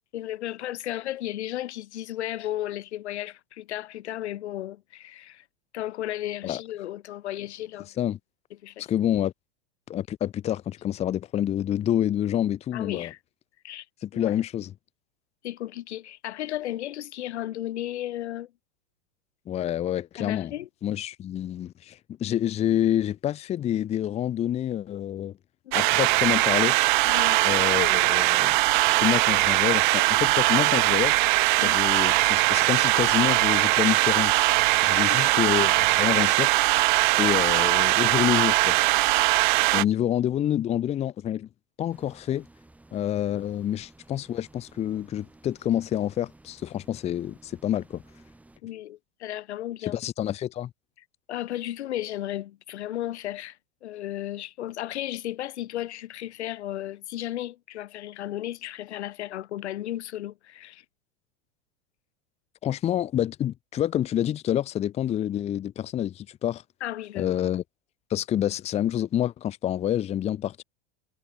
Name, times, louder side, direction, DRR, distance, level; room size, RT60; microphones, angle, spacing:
voice 1, 0.1-5.4 5.7-7.9 8.6-8.9 12.7-13.2 13.6-13.8 14.1-14.3 15.4-18.5 20.2-20.7 25.6-25.8 27.0-27.4 31.6-31.8 34.9-35.4 37.1-37.4 39.7-39.9 48.6-50.0 51.3-60.8 66.8-67.4, left 13 dB, 85° left, 2.6 m, -34 dB
voice 2, 8.8-9.3 9.9-13.1 14.0-14.7 19.5-20.5 20.8-25.3 25.7-26.8 27.4-28.6 28.8-31.2 31.6-34.3 34.8-36.5 37.2-38.8 39.7-41.5 41.8-42.5 42.9-48.0 49.8-50.7 62.6-66.6 67.1-67.6 68.1-70.6, left 11 dB, 20° left, 1.0 m, -27 dB
sound 1, 25.7-39.8, right 23 dB, 45° right, 0.4 m, -21 dB
sound 2, 41.9-48.6, right 2 dB, 5° right, 6.1 m, -55 dB
supercardioid pair, 155°, 33 cm